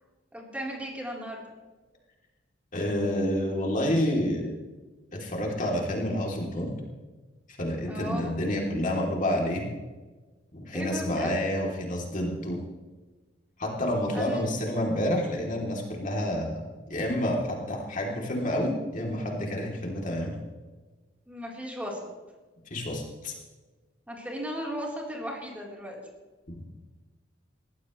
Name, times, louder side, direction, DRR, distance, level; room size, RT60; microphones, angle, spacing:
voice 1, 0.3-1.4 7.8-8.3 10.7-11.3 14.1-14.4 19.6-19.7 21.3-22.1 24.1-26.0, equal, 10° right, -3 dB, 3.8 m, -36 dB
voice 2, 2.7-4.5 5.1-6.7 7.5-9.7 10.5-12.6 13.6-16.6 16.9-20.4 22.7-23.3 26.5-26.7, left 1 dB, 45° left, -1 dB, 3.1 m, -29 dB
21.0 x 15.5 x 3.2 m, 1.3 s
head